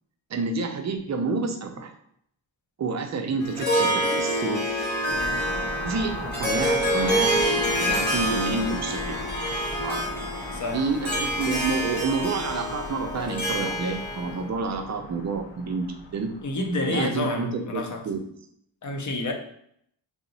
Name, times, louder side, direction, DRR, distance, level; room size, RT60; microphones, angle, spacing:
voice 1, 0.3-1.9 2.8-4.6 5.8-9.0 9.8-10.1 10.7-15.9 16.1-16.3 16.9-18.2, right 4 dB, 40° right, 4 dB, 0.4 m, -29 dB
Harp, 3.4-14.3, equal, 20° left, 1.1 m, -27 dB
sound 1, 5.1-16.9, left 2 dB, 70° left, 0.8 m, -38 dB
voice 2, 10.5-10.8 16.4-18.0 18.8-19.3, left 2 dB, 40° left, 3 dB, 0.5 m, -29 dB
2.8 x 2.0 x 3.8 m, 0.69 s
wide cardioid pair, 115°, 47 cm